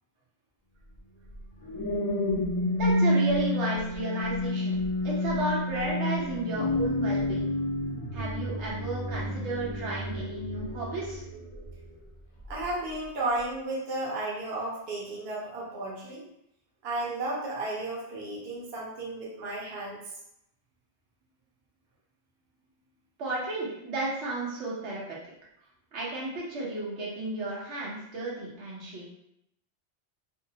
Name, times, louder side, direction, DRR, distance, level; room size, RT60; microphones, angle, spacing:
sound 1, 1.3-11.9 12.4-12.7, left 1 dB, 50° left, 0.3 m, -29 dB
voice 1, 2.7-4.8 5.0-7.6 8.1-11.2 23.2-25.2 25.9-29.1, right 2 dB, 90° right, -5 dB, 1.1 m, -33 dB
voice 2, 12.5-16.2 16.8-20.0, right 2 dB, 65° right, -4 dB, 0.9 m, -33 dB
2.7 x 2.0 x 2.7 m, 0.78 s
omnidirectional pair, 1.2 m